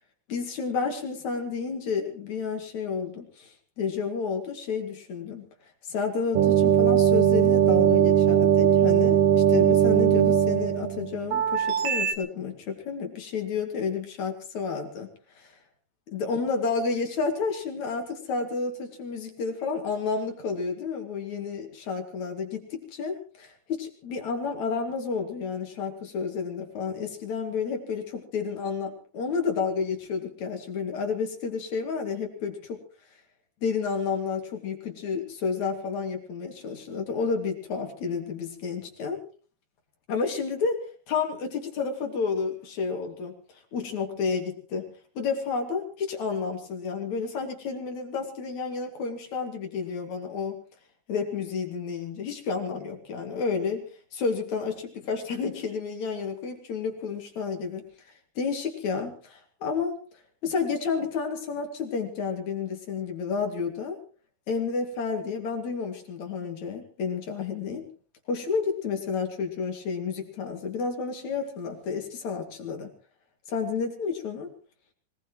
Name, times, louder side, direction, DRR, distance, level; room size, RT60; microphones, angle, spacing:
voice 1, 0.3-5.5 5.9-15.1 15.4-15.5 16.1-32.8 33.6-39.2 40.1-40.8 41.1-43.4 43.7-50.6 51.1-57.8 58.4-60.0 60.4-64.0 64.5-67.9 68.3-72.9 73.5-74.5, left 5 dB, 60° left, 3 dB, 3.7 m, -31 dB
sound 1, 6.3-12.1, right 10 dB, 80° right, 3.0 m, -20 dB
24.5 x 19.0 x 3.1 m, 0.39 s
omnidirectional pair, 3.8 m